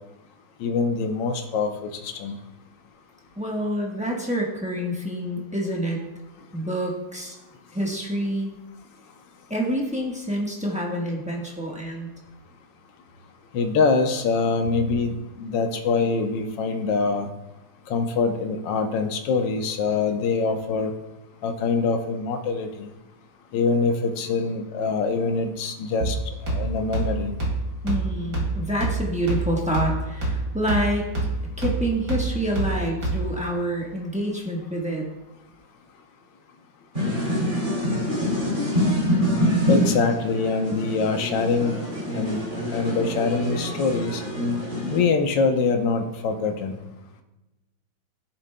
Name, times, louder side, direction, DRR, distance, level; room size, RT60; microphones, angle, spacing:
voice 1, 0.6-2.4 13.5-17.3 17.9-20.9 21.4-22.9 23.5-26.2 26.4-27.4 39.7-41.8 42.1-42.4 42.7-44.2 44.9-46.8, left 4 dB, 75° left, 6 dB, 1.5 m, -24 dB
voice 2, 3.4-6.0 6.5-7.4 7.7-8.5 9.5-12.1 27.8-31.1 31.6-35.1, right 1 dB, 5° right, -2 dB, 0.9 m, -27 dB
sound 1, 26.0-33.5, right 2 dB, 60° right, 3.0 m, -28 dB
sound 2, 36.9-45.0, equal, 25° right, 2.7 m, -25 dB
14.0 x 7.2 x 2.2 m, 1.0 s
omnidirectional pair, 2.0 m